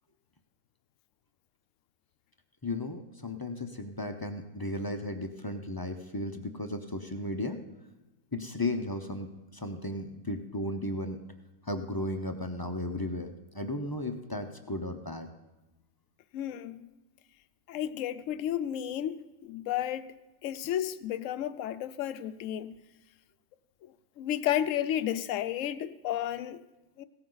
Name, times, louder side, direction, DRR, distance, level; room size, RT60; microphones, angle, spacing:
voice 1, 2.6-7.6 8.3-11.2 11.6-15.3, left 1 dB, 25° left, 6 dB, 0.6 m, -35 dB
voice 2, 16.3-16.9 17.7-22.8 24.2-26.6 27.0-27.1, left 11 dB, 70° left, 13 dB, 0.9 m, -32 dB
17.0 x 14.0 x 3.9 m, 1.1 s
omnidirectional pair, 1.5 m